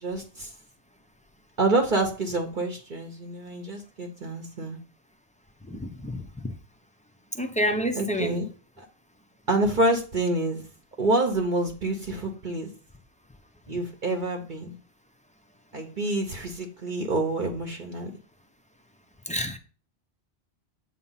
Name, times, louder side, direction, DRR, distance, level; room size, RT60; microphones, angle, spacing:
voice 1, 0.0-0.5 1.6-4.8 8.0-8.4 8.8-8.9 9.5-10.6 11.0-12.7 13.7-14.8 15.7-18.1, right 2 dB, 50° right, 1.0 m, -27 dB
voice 2, 5.7-6.2 7.3-8.4 19.3-19.6, equal, 10° left, 0.5 m, -28 dB
7.9 x 2.9 x 5.5 m
omnidirectional pair, 1.1 m